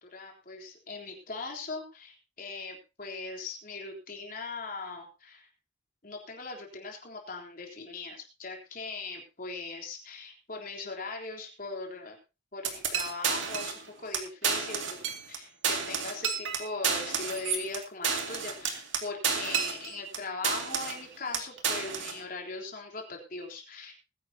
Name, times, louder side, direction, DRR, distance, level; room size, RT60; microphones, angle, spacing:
voice 1, 0.0-5.5 6.0-12.2 12.5-15.0 15.3-23.9, left 3 dB, 45° left, 1 dB, 3.7 m, -40 dB
sound 1, 12.6-13.8 14.1-14.2 14.4-15.4 15.6-20.2 20.4-21.0 21.3-22.2, right 6 dB, 85° right, 2.4 m, -31 dB
21.0 x 10.5 x 2.9 m, 0.29 s
head